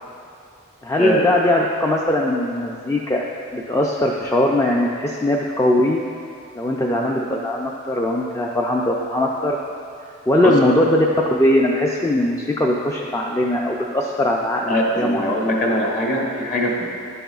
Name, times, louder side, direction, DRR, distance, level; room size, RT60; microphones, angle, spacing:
voice 1, 0.8-3.2 3.5-6.0 6.6-9.6 10.3-11.1 11.3-15.3, left 1 dB, 15° left, -1 dB, 0.3 m, -20 dB
voice 2, 14.7-16.9, equal, 40° left, -2 dB, 1.2 m, -21 dB
11.0 x 7.7 x 2.4 m, 2.6 s
head